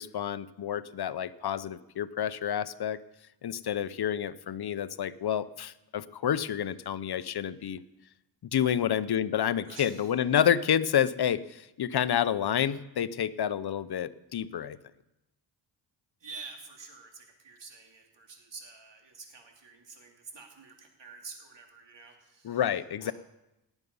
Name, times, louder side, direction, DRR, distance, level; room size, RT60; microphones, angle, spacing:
voice 1, 0.0-3.0 3.4-7.8 8.5-14.8 22.4-23.1, left 9 dB, 55° left, 16 dB, 0.8 m, -29 dB
voice 2, 9.6-10.1 16.2-22.6 23.0-23.1, right 4 dB, 65° right, 2 dB, 3.0 m, -48 dB
18.5 x 8.2 x 5.5 m, 0.93 s
cardioid pair, 50°, 46 cm